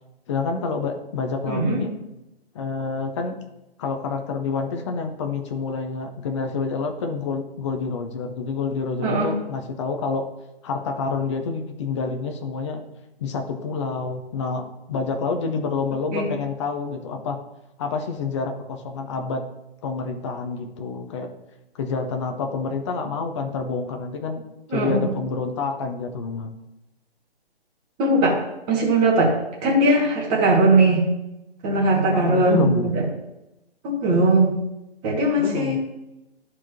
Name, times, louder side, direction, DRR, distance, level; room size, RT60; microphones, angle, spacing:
voice 1, 0.3-1.9 2.5-3.4 3.8-10.3 10.6-12.8 13.2-17.4 17.8-19.4 19.8-21.3 21.7-24.4 24.7-26.6 32.1-32.9 35.4-35.8, left 4 dB, 30° left, 4 dB, 0.8 m, -28 dB
voice 2, 1.4-1.8 9.0-9.3 16.1-16.3 24.7-25.1 28.0-28.4 28.7-29.3 29.6-31.0 31.6-33.0 33.8-34.6 35.0-35.8, right 2 dB, 20° right, -3 dB, 2.2 m, -19 dB
13.0 x 4.7 x 3.0 m, 0.93 s
figure-of-eight pair, 140°, 31 cm